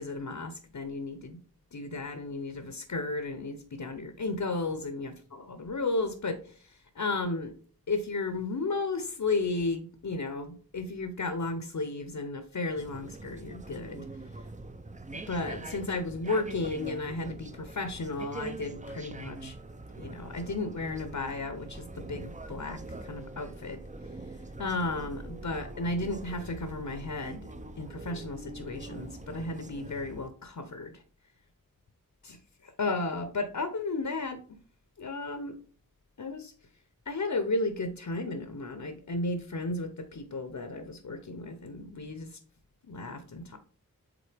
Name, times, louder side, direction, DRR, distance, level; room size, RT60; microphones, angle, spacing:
voice 1, 0.0-1.4 1.7-5.1 5.5-7.5 7.9-14.1 15.3-19.5 20.0-23.8 24.6-27.5 27.8-31.0 32.2-34.6 35.0-35.6 36.2-36.5 37.1-42.4 42.8-43.6, left 3 dB, 60° left, 8 dB, 0.7 m, -34 dB
sound 1, 12.8-30.3, right 2 dB, 20° right, 0.5 m, -43 dB
7.7 x 3.8 x 3.4 m, 0.42 s
wide cardioid pair, 60°, 35 cm